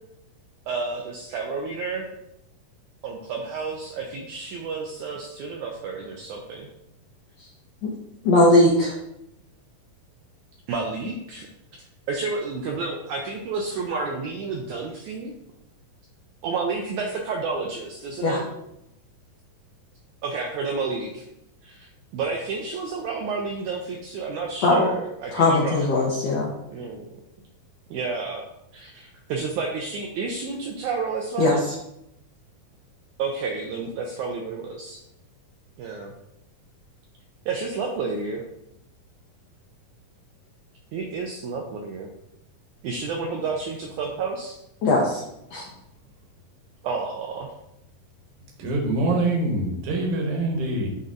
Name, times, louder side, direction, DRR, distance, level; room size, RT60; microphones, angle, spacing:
voice 1, 0.7-2.1 3.0-6.7 10.7-11.5 11.7-15.3 16.4-18.4 20.2-21.3 21.6-25.9 26.7-27.1 27.9-28.4 28.7-31.5 33.2-35.0 35.8-36.1 37.5-38.4 40.9-42.1 42.8-44.6 46.8-47.5, right 4 dB, 80° right, 1 dB, 1.7 m, -30 dB
voice 2, 8.2-8.9 18.2-18.4 24.6-24.9 25.3-26.5 31.4-31.6 44.8-45.2 45.5-45.6, left 2 dB, 85° left, -3 dB, 1.4 m, -19 dB
voice 3, 48.6-50.9, right 2 dB, 65° right, 0 dB, 2.4 m, -24 dB
9.5 x 4.0 x 2.5 m, 0.83 s
omnidirectional pair, 4.1 m